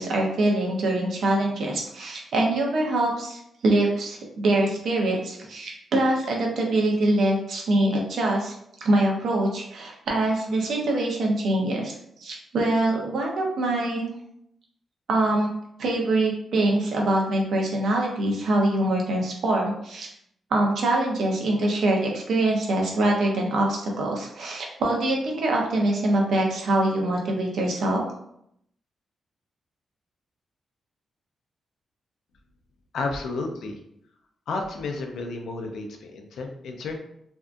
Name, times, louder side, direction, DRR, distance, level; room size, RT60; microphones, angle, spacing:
voice 1, 0.0-8.5 8.8-14.1 15.1-20.1 20.5-28.0, right 1 dB, 70° right, -1 dB, 0.6 m, -24 dB
voice 2, 32.9-33.7 34.5-37.0, left 3 dB, 80° left, 3 dB, 0.4 m, -31 dB
2.6 x 2.3 x 2.5 m, 0.75 s
wide cardioid pair, 130°, 0 cm